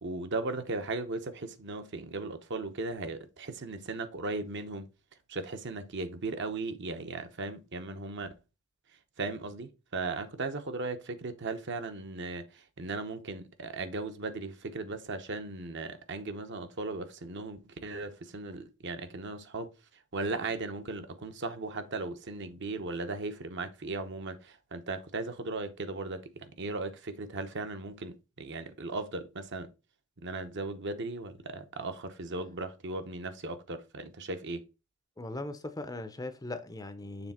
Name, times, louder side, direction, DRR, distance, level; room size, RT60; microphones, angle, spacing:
voice 1, 0.0-4.9 5.3-8.3 9.2-19.7 20.1-29.7 30.2-34.6, right 3 dB, 55° right, 0.9 m, -37 dB
voice 2, 35.2-37.3, left 2 dB, 15° left, 0.6 m, -39 dB
7.0 x 3.3 x 4.2 m
head